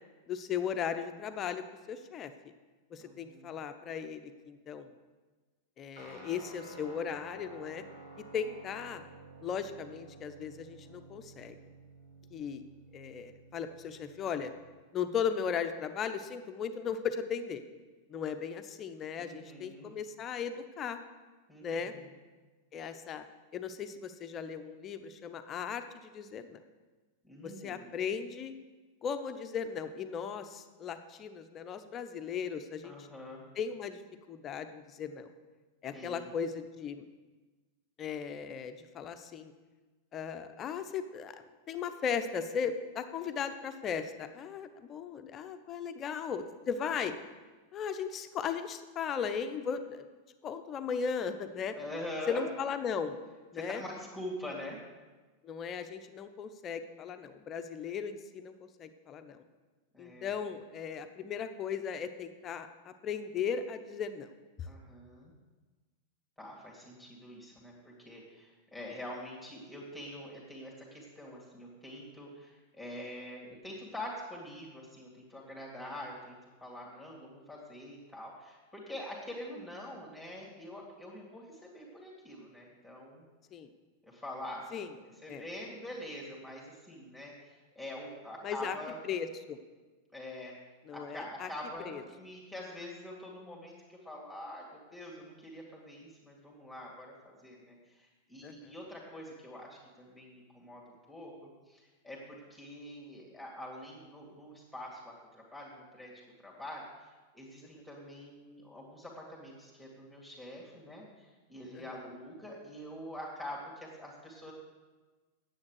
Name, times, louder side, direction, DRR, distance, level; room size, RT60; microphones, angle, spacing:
voice 1, 0.3-2.3 2.9-4.9 5.8-7.8 8.3-9.0 9.4-11.6 12.3-12.6 12.9-14.5 14.9-17.6 18.1-21.0 21.6-21.9 22.7-23.2 23.5-26.6 27.4-28.5 29.0-33.1 33.6-34.0 34.3-35.3 35.8-37.0 38.0-39.5 40.1-41.3 41.7-47.2 47.7-50.1 50.4-51.7 52.3-53.2 53.5-53.8 55.4-59.4 60.0-64.3 83.5-83.7 84.7-84.9 85.3-85.4 88.4-88.8 89.0-89.6 90.9-91.5 91.9-92.0 98.4-98.7 111.7-111.8, left 7 dB, 30° left, 9 dB, 0.8 m, -37 dB
voice 2, 3.0-3.5 19.2-19.9 21.5-22.1 27.2-27.9 32.8-33.4 35.9-36.3 51.7-52.4 53.5-54.8 59.9-60.4 64.7-65.3 66.4-83.3 84.0-84.8 85.0-89.0 90.1-90.5 90.9-106.1 106.4-107.1 107.3-114.5, left 1 dB, ahead, -4 dB, 2.3 m, -45 dB
Guitar, 6.0-14.8, right 2 dB, 50° right, 3.5 m, -52 dB
9.7 x 8.1 x 6.5 m, 1.3 s
figure-of-eight pair, 90°, 0 cm